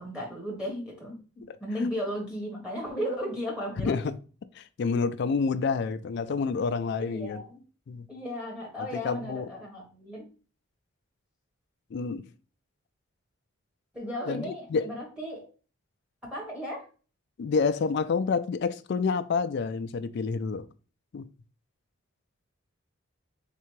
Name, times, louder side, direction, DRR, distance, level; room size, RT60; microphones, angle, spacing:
voice 1, 0.0-3.9 7.0-7.6 8.1-10.2 13.9-15.4 16.3-16.8, equal, 5° right, 1.2 m, -35 dB
voice 2, 3.8-4.2 4.6-7.4 7.9-8.1 9.0-9.5 11.9-12.2 14.3-14.9 17.4-20.7 21.1-21.3, left 5 dB, 55° left, 0.3 m, -28 dB
3.7 x 3.3 x 3.1 m
head